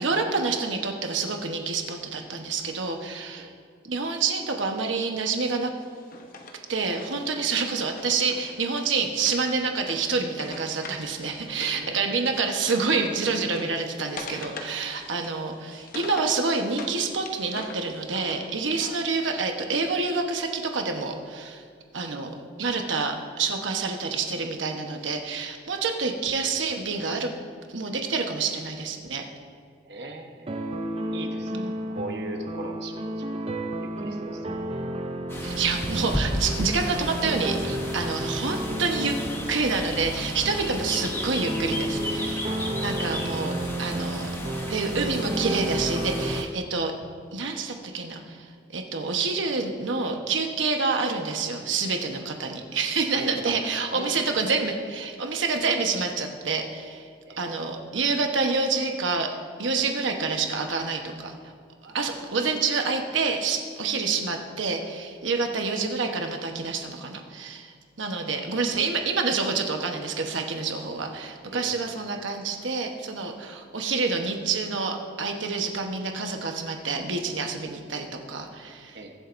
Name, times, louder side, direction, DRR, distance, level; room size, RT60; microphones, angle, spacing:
voice 1, 0.0-3.5 3.8-5.7 6.7-21.6 21.9-27.3 27.7-29.2 31.5-31.7 35.4-39.2 39.5-43.5 43.8-44.3 44.7-46.9 47.3-48.5 48.7-57.1 57.4-59.3 59.6-61.3 61.8-67.7 68.0-79.0, right 4 dB, 80° right, 3 dB, 1.1 m, -28 dB
Wood, 5.8-11.8 12.1-17.0 17.3-19.0, left 2 dB, 45° left, 1.0 m, -42 dB
voice 2, 11.6-12.1 29.8-30.5 31.1-34.5 34.8-34.9 53.1-53.6 53.9-54.2 57.3-57.5 71.5-71.8 78.9-79.1, right 2 dB, 60° right, 3 dB, 1.1 m, -39 dB
sound 1, 30.5-46.4, right 1 dB, 30° right, 0.5 m, -32 dB
sound 2, 35.3-46.4, left 1 dB, 15° left, 0.8 m, -34 dB
22.5 x 7.5 x 2.6 m, 2.1 s
head